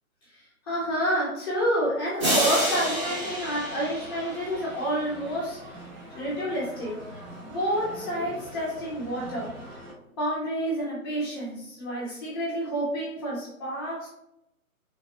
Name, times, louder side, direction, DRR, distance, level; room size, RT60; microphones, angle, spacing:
voice 1, 0.3-5.8 6.1-7.0 7.5-9.5 10.2-14.1, equal, 15° left, -7 dB, 0.7 m, -29 dB
sound 1, 2.2-5.1, right 1 dB, 20° right, 0.7 m, -29 dB
sound 2, 2.3-9.9, right 1 dB, 45° right, 1.5 m, -43 dB
3.2 x 2.3 x 2.8 m, 0.81 s
figure-of-eight pair, 140°, 43 cm